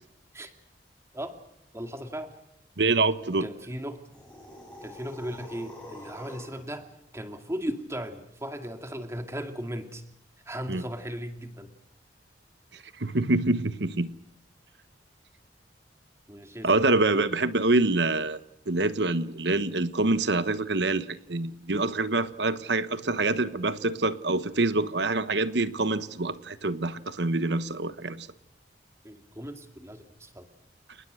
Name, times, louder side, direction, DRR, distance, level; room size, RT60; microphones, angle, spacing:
voice 1, 1.7-2.4 3.4-4.1 4.8-10.0 10.5-11.7 16.3-16.7 17.1-17.3 29.0-30.5, equal, 15° right, 6 dB, 2.3 m, -37 dB
voice 2, 2.8-3.5 10.7-10.8 12.7-14.1 16.6-18.4 18.7-28.3, right 2 dB, 70° right, 13 dB, 1.2 m, -26 dB
sound 1, 4.1-6.7, left 1 dB, 5° left, 7.4 m, -46 dB
29.5 x 20.0 x 6.5 m, 0.78 s
head